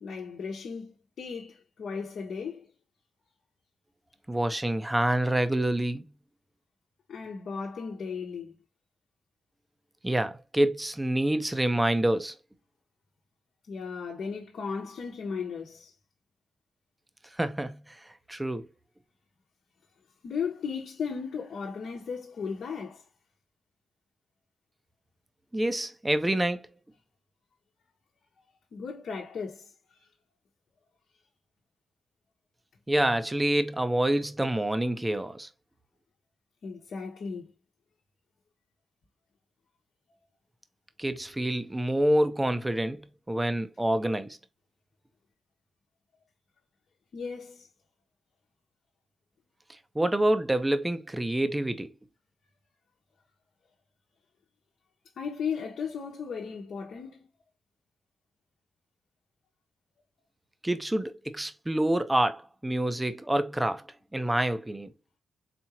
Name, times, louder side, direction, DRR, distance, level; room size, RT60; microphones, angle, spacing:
voice 1, 0.0-2.7 7.1-8.5 13.7-15.9 20.2-23.0 28.7-30.1 36.6-37.5 47.1-47.7 55.2-57.3, left 6 dB, 65° left, 1.0 m, -36 dB
voice 2, 4.3-6.0 10.0-12.3 17.4-18.0 18.3-18.7 25.5-26.6 32.9-35.5 41.0-44.3 49.9-51.9 60.6-63.8 64.1-64.9, right 1 dB, 15° right, 0.8 m, -27 dB
4.3 x 3.6 x 2.9 m
supercardioid pair, 50°, 0 cm